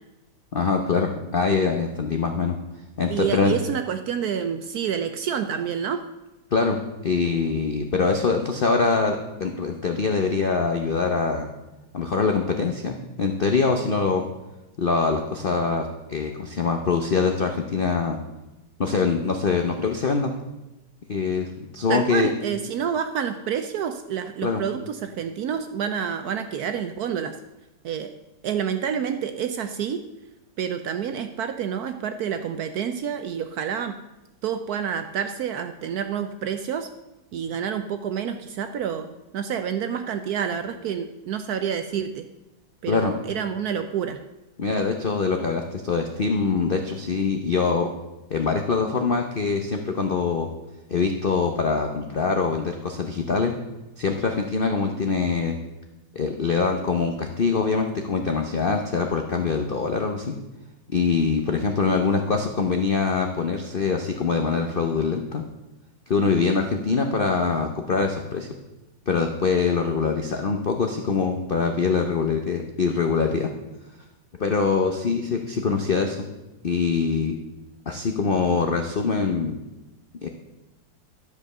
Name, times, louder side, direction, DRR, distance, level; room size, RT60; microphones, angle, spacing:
voice 1, 0.5-2.6 3.0-3.5 6.5-11.5 11.9-14.2 14.8-18.2 18.8-20.3 21.1-22.3 24.4-24.6 42.9-43.2 44.6-47.9 48.3-50.5 50.9-53.5 54.0-55.6 56.1-60.3 60.9-65.4 66.1-68.5 69.1-73.5 74.4-76.3 76.6-77.4 77.9-79.6 80.2-80.3, left 5 dB, 85° left, 4 dB, 0.4 m, -24 dB
voice 2, 3.1-6.0 21.9-27.4 27.8-28.1 28.4-30.0 30.6-33.9 34.4-36.9 37.3-42.3 42.8-44.2, right 8 dB, 70° right, 8 dB, 0.9 m, -28 dB
12.0 x 5.2 x 6.6 m, 1.0 s
omnidirectional pair, 2.1 m